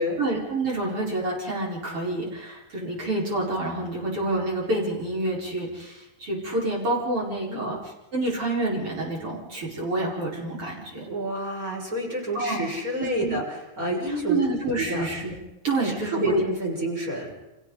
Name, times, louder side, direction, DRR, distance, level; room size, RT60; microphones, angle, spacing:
voice 1, 0.2-7.8 8.1-11.0 12.3-12.6 13.0-13.4 14.1-15.3 15.6-16.4, right 2 dB, 45° right, -4 dB, 5.7 m, -28 dB
voice 2, 7.5-7.8 11.0-14.4 14.8-15.1 15.8-17.3, right 1 dB, 25° right, -3 dB, 6.7 m, -29 dB
30.0 x 27.0 x 4.1 m, 1.0 s
omnidirectional pair, 3.6 m